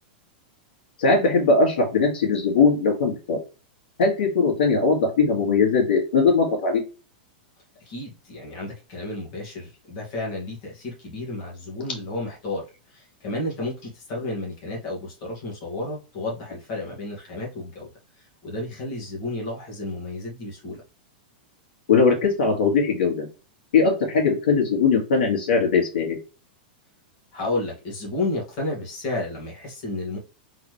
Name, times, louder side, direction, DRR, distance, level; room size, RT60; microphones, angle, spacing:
voice 1, 1.0-3.4 4.0-6.8 21.9-23.3 23.7-26.2, left 4 dB, 80° left, 2.2 m, -20 dB
voice 2, 7.8-12.6 12.9-17.9 18.2-20.8 27.3-30.2, left 2 dB, 40° left, 2.3 m, -32 dB
4.1 x 4.0 x 3.3 m
supercardioid pair, 170°, 5 cm